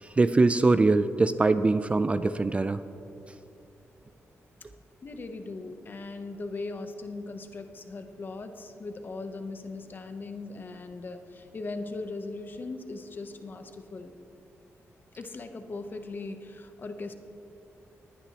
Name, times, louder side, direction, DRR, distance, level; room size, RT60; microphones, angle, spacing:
voice 1, 0.0-2.8, right 3 dB, 25° right, 12 dB, 0.3 m, -23 dB
voice 2, 5.0-14.1 15.2-17.1, left 3 dB, 40° left, 7 dB, 0.8 m, -39 dB
19.5 x 9.9 x 2.9 m, 2.9 s
cardioid pair, 110°, 5 cm